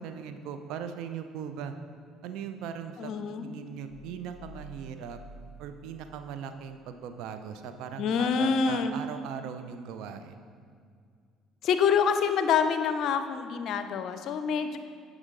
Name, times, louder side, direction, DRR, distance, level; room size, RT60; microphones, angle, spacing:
voice 1, 0.0-1.7 2.2-3.1 3.4-5.2 5.6-10.4, right 7 dB, 65° right, 8 dB, 0.5 m, -39 dB
voice 2, 3.0-3.5 8.0-9.0 11.6-14.8, left 6 dB, 55° left, 9 dB, 0.5 m, -26 dB
sound 1, 3.9-6.5 6.8-6.9, right 1 dB, 30° left, 0.8 m, -50 dB
10.5 x 4.9 x 3.7 m, 2.2 s
figure-of-eight pair, 55°, 0 cm